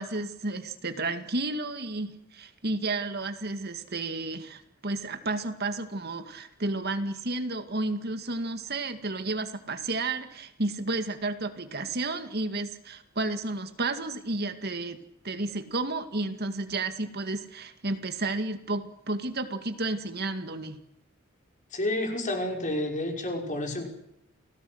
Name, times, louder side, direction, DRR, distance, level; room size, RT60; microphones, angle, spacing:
voice 1, 0.0-15.0 15.2-20.8, right 2 dB, 45° right, 8 dB, 2.2 m, -32 dB
voice 2, 21.7-23.8, left 1 dB, 35° left, 3 dB, 5.9 m, -30 dB
29.5 x 18.5 x 8.0 m, 0.81 s
head